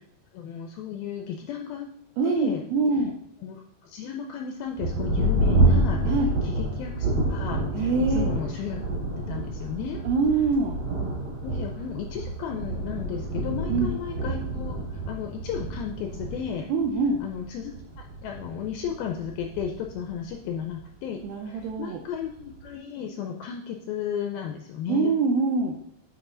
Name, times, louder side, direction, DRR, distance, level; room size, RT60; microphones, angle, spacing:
voice 1, 0.3-1.9 2.2-2.6 3.4-8.8 9.2-10.0 11.4-16.7 17.2-17.7 18.2-21.2 21.5-25.1, left 8 dB, 85° left, 3 dB, 2.1 m, -34 dB
voice 2, 2.2-3.2 6.1-6.3 7.7-8.3 10.1-10.8 13.7-13.9 16.7-17.2 21.2-22.0 24.9-25.8, right 4 dB, 85° right, 2 dB, 2.1 m, -24 dB
Thunder, 4.8-20.8 21.6-21.7 22.2-22.7, right 2 dB, 50° right, 3.6 m, -28 dB
8.3 x 5.4 x 3.8 m, 0.71 s
omnidirectional pair, 4.9 m